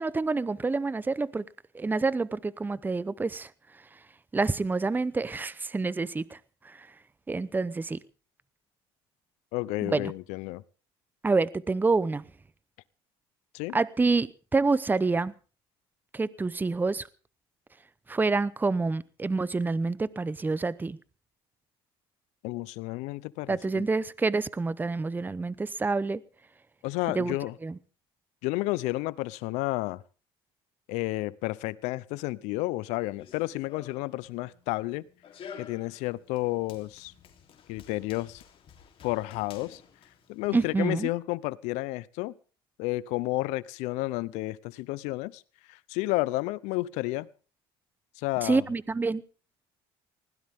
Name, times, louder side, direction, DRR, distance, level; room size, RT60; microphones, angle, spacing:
voice 1, 0.0-1.4 1.7-3.5 4.3-6.4 6.6-6.9 7.3-8.0 9.8-10.1 11.2-12.2 13.7-15.3 16.1-17.1 18.1-21.0 23.5-26.2 27.1-27.4 27.6-27.8 40.5-41.1 48.4-49.2, right 3 dB, 15° right, 0.8 m, -27 dB
voice 2, 9.5-10.6 13.5-13.8 22.4-23.9 26.8-27.6 28.4-30.0 30.9-35.0 35.6-37.1 37.7-38.4 39.0-39.8 40.3-42.3 42.8-45.4 45.7-47.3 48.2-48.6, left 20 dB, 75° left, 0.8 m, -31 dB
Run, 33.0-40.7, left 7 dB, 50° left, 3.5 m, -51 dB
20.0 x 17.0 x 3.7 m
supercardioid pair, 85°, 12 cm